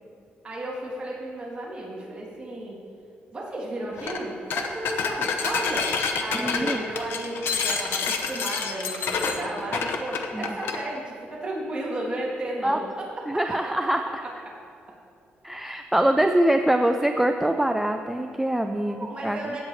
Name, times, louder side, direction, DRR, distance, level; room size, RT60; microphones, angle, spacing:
voice 1, 0.4-2.8 3.3-13.7 14.2-14.3 18.8-19.6, right 1 dB, 30° right, -6 dB, 2.7 m, -33 dB
sound 1, 4.0-4.2 4.5-10.8, left 5 dB, 75° left, 0.8 m, -28 dB
voice 2, 6.3-6.8 10.3-10.5 12.6-12.8 13.3-14.0 15.4-19.4, right 1 dB, 5° right, 5 dB, 0.4 m, -24 dB
16.0 x 7.7 x 3.2 m, 2.4 s
cardioid pair, 125°, 4 cm